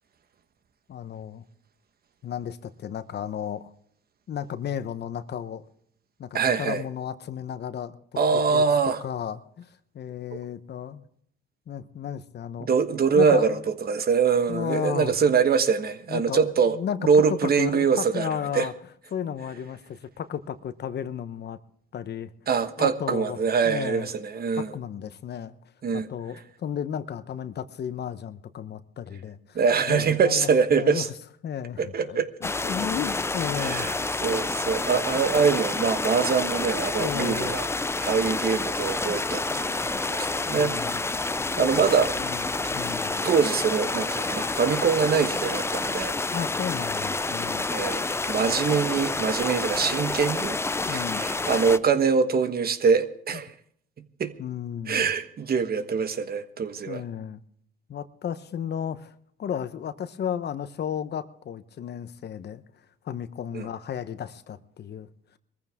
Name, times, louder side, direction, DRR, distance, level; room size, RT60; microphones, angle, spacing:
voice 1, 0.9-1.4 2.2-3.7 4.3-5.6 6.2-8.0 8.3-8.6 9.0-9.7 9.9-11.0 11.7-12.7 13.1-13.6 14.5-15.1 16.1-17.0 17.3-18.7 19.1-21.6 21.9-22.3 22.8-23.4 23.6-24.1 24.6-25.5 25.9-31.0 31.4-33.9 35.1-35.2 37.0-37.5 40.5-41.1 41.6-41.8 42.2-43.3 46.3-47.7 50.9-51.2 53.3-53.4 54.4-55.1 56.9-57.4 57.9-59.1 59.4-62.6 63.0-65.1, left 8 dB, 55° left, 12 dB, 1.0 m, -33 dB
voice 2, 6.3-6.8 8.2-9.0 12.6-16.8 17.0-18.3 18.5-18.7 22.5-24.7 25.8-26.1 29.5-31.1 31.8-32.3 33.6-33.9 34.2-37.7 38.0-41.1 41.6-42.1 43.2-46.1 47.7-50.6 50.9-53.5 54.2-54.3 54.9-57.0 63.5-63.7, right 6 dB, 50° right, 10 dB, 1.3 m, -24 dB
sound 1, 32.4-51.8, left 3 dB, 15° left, 0.5 m, -28 dB
21.0 x 14.5 x 3.6 m, 0.63 s
cardioid pair, 90°, 20 cm